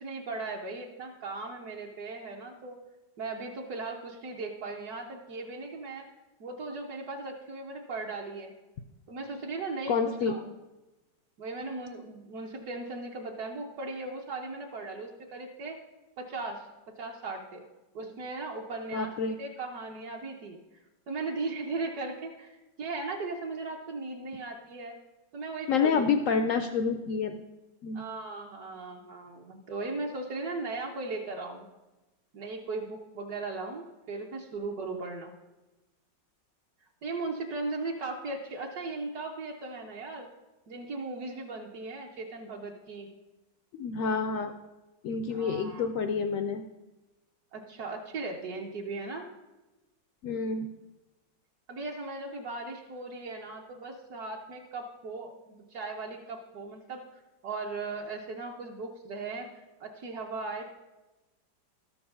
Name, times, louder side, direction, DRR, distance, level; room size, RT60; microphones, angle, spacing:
voice 1, 0.0-2.8 3.2-6.1 6.4-8.5 9.1-10.5 11.4-15.8 16.2-16.7 17.0-17.6 17.9-19.1 19.4-20.6 21.1-24.9 25.3-26.0 27.9-31.7 32.3-35.3 37.0-40.3 40.7-43.1 45.3-45.9 47.5-49.3 51.7-57.0 57.4-59.5 59.8-60.7, right 3 dB, 65° right, -1 dB, 1.3 m, -37 dB
voice 2, 9.9-10.3 18.9-19.4 25.7-27.4 27.8-28.0 43.7-44.5 45.0-46.6 50.2-50.7, left 5 dB, 85° left, 8 dB, 0.7 m, -28 dB
13.0 x 4.7 x 6.5 m, 1.1 s
omnidirectional pair, 1.9 m